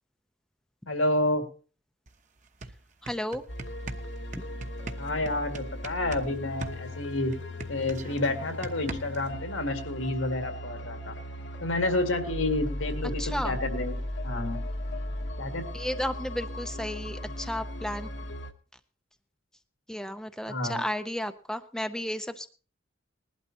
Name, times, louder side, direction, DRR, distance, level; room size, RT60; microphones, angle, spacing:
voice 1, 0.9-1.4 5.0-7.3 7.7-11.1 11.6-14.0 14.2-14.6 15.4-15.6 20.5-20.8, left 2 dB, 85° left, 5 dB, 2.4 m, -29 dB
sound 1, 2.1-2.2 2.4-6.3 6.6-9.3, right 2 dB, 40° right, 1.0 m, -40 dB
voice 2, 3.0-3.4 4.4-4.5 13.2-13.6 15.7-18.1 19.9-22.5, left 1 dB, 5° left, 8 dB, 0.5 m, -33 dB
sound 2, 3.5-18.5, left 1 dB, 60° left, 1.1 m, -37 dB
20.0 x 12.0 x 2.9 m, 0.38 s
head